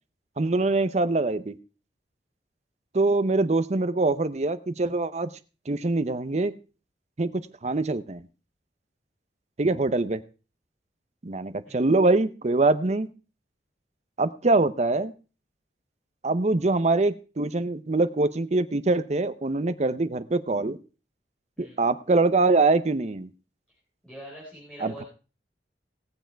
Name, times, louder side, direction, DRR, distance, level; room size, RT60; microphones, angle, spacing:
voice 1, 0.4-1.6 2.9-5.3 5.7-6.6 7.2-8.2 9.6-10.2 11.2-13.1 14.2-15.1 16.2-20.8 21.6-23.3 24.8-25.0, right 3 dB, 40° right, 14 dB, 0.7 m, -24 dB
voice 2, 24.0-25.1, equal, 5° left, -6 dB, 4.0 m, -43 dB
18.0 x 7.0 x 4.5 m, 0.35 s
head